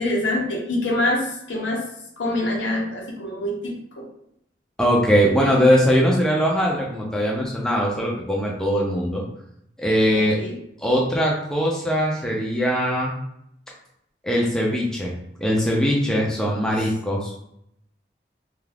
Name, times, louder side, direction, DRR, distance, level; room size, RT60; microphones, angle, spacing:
voice 1, 0.0-1.9 2.2-4.1 10.1-10.6, left 1 dB, 85° left, -1 dB, 0.8 m, -25 dB
voice 2, 4.8-9.2 9.8-10.4 10.8-13.1 14.2-15.1 15.4-17.4, equal, 5° left, -3 dB, 0.4 m, -21 dB
2.4 x 2.3 x 3.3 m, 0.76 s
head